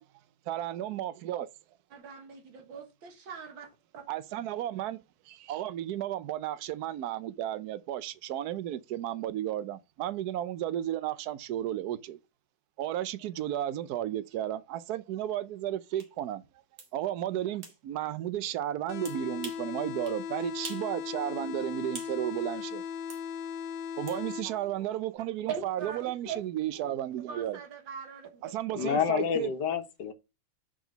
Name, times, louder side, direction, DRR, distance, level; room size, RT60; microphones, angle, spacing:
voice 1, 0.5-1.5 4.1-5.0 5.3-12.2 12.8-16.4 16.9-22.8 24.0-27.6 28.4-29.5, right 12 dB, 65° right, 1.1 m, -33 dB
voice 2, 1.9-4.0 25.5-26.4 26.7-26.9 27.3-28.9, right 7 dB, 80° right, 2.3 m, -41 dB
sound 1, 16.0-16.1 16.8-16.9 17.6-17.8 19.0-19.7 20.1-20.2 20.6-20.9 21.2-22.2 23.1-23.2 24.1-24.2, right 4 dB, 45° right, 1.8 m, -44 dB
sound 2, 18.9-24.9, left 7 dB, 85° left, 1.4 m, -38 dB
voice 3, 28.8-30.1, left 7 dB, 65° left, 1.6 m, -28 dB
6.4 x 5.1 x 5.2 m
omnidirectional pair, 2.1 m